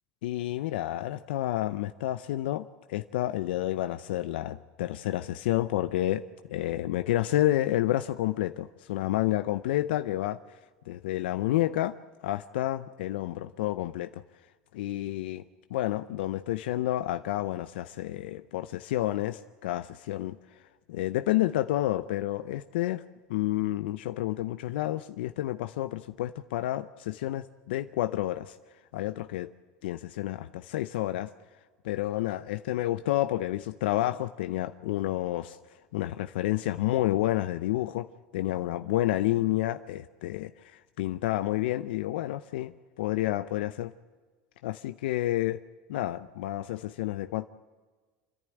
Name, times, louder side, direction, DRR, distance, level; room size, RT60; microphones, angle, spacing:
voice 1, 0.2-6.2 6.5-10.4 10.9-12.0 12.2-14.2 14.7-15.4 15.7-20.4 20.9-23.0 23.3-28.6 28.9-29.5 29.8-31.3 31.8-35.6 35.9-43.9 44.6-45.6 45.9-47.5, left 14 dB, 80° left, 11 dB, 0.6 m, -30 dB
28.0 x 11.0 x 10.0 m, 1.4 s
supercardioid pair, 105°, 5 cm